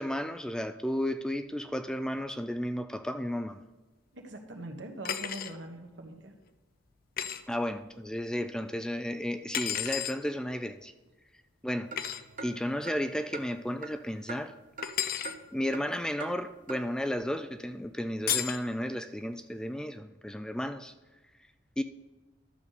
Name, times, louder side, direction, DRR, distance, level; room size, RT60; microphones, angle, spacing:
voice 1, 0.0-3.6 7.5-10.9 11.6-11.9 12.4-14.5 15.5-20.9 21.8-21.9, equal, 5° left, 0.3 m, -33 dB
voice 2, 4.1-6.3, right 1 dB, 70° right, 1.4 m, -42 dB
sound 1, 5.0-5.5 7.2-7.4 9.5-10.2 12.0-12.2 14.8-15.3 18.3-18.6, left 10 dB, 50° left, 0.5 m, -32 dB
sound 2, 11.8-15.0 15.2-15.9 16.2-16.3 16.7-16.8, right 3 dB, 45° right, 0.9 m, -44 dB
12.0 x 6.7 x 4.1 m
head